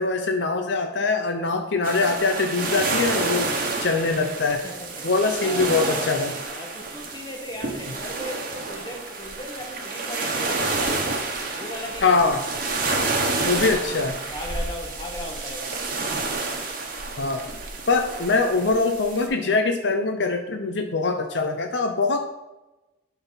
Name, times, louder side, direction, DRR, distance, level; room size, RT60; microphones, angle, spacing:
voice 1, 0.0-3.5 3.8-4.6 5.0-6.3 12.0-12.4 13.4-14.1 17.2-17.5 17.9-22.2, left 3 dB, 65° left, 5 dB, 0.6 m, -23 dB
sound 1, 1.8-19.3, right 3 dB, 45° right, 1.2 m, -29 dB
voice 2, 4.6-5.1 5.4-6.2 6.6-11.3 11.6-12.4 13.7-13.8 14.3-15.9, left 1 dB, 25° left, 0 dB, 1.4 m, -37 dB
11.5 x 4.0 x 4.0 m, 1.0 s
head